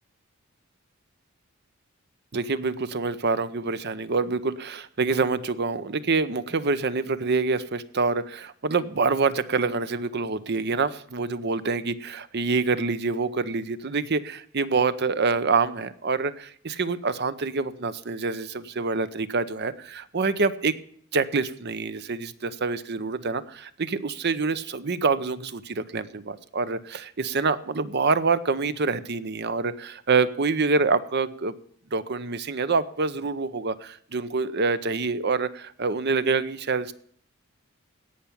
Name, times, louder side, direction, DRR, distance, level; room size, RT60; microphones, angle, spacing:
voice 1, 2.3-20.7 21.1-31.5 31.9-36.9, right 4 dB, 50° right, 14 dB, 0.7 m, -26 dB
17.0 x 5.9 x 7.0 m, 0.63 s
head